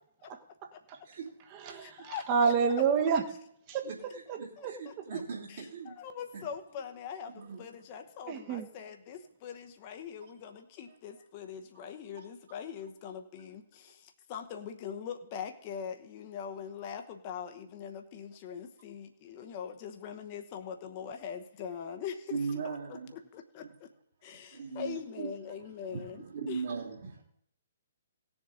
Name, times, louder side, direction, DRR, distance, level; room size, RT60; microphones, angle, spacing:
voice 1, 0.3-1.0 1.5-3.2 3.7-3.9 4.3-4.7 8.3-8.7, right 6 dB, 30° right, 5 dB, 1.4 m, -29 dB
voice 2, 1.7-2.5 4.6-5.2 5.5-23.9 24.2-26.2 26.5-26.6, left 7 dB, 35° left, 6 dB, 1.0 m, -42 dB
voice 3, 3.8-6.0 6.3-6.4 7.3-7.8 10.2-10.3 11.1-11.2 12.2-12.3 22.3-23.1 23.6-23.7 24.5-25.3 25.9-27.2, right 5 dB, 55° right, -2 dB, 2.9 m, -39 dB
18.0 x 7.2 x 3.8 m, 0.71 s
figure-of-eight pair, 125°, 0 cm